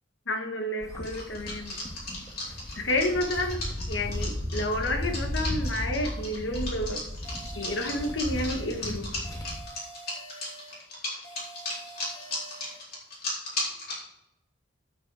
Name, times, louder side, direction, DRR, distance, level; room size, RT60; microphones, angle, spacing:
voice 1, 0.3-1.8 2.8-3.6 3.9-7.0 7.6-9.1, left 1 dB, 75° left, 5 dB, 1.3 m, -30 dB
sound 1, 0.8-9.6, equal, 20° left, 1.6 m, -35 dB
sound 2, 1.0-14.0, left 2 dB, 55° left, 4.2 m, -35 dB
sound 3, 7.2-8.8 9.2-10.8 11.2-12.8, right 2 dB, 35° left, 3.3 m, -47 dB
9.4 x 8.0 x 4.7 m, 0.84 s
head